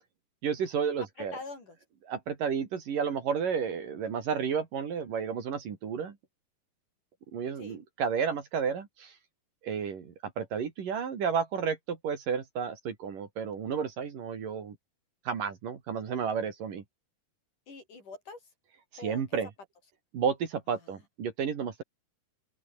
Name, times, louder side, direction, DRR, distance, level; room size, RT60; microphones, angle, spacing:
voice 1, 0.4-1.4 2.0-6.2 7.3-9.1 9.6-14.8 15.3-16.8 19.0-19.5 20.1-21.8, right 6 dB, 60° right, 4.2 m, -32 dB
voice 2, 1.2-1.8 7.6-7.8 17.7-18.4 19.0-19.2 20.8-21.0, left 3 dB, 50° left, 8.7 m, -44 dB
open air
omnidirectional pair, 4.5 m